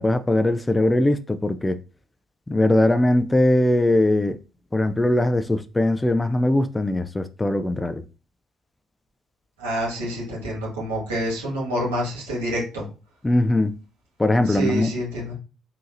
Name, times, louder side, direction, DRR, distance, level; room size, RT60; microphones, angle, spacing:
voice 1, 0.0-1.8 2.5-4.4 4.7-8.0 13.2-13.8 14.2-15.0, left 1 dB, 15° left, 0.4 m, -20 dB
voice 2, 9.6-12.8 14.5-15.3, equal, 80° right, 1.7 m, -27 dB
3.8 x 2.8 x 2.6 m
hypercardioid pair, 45°, 0 cm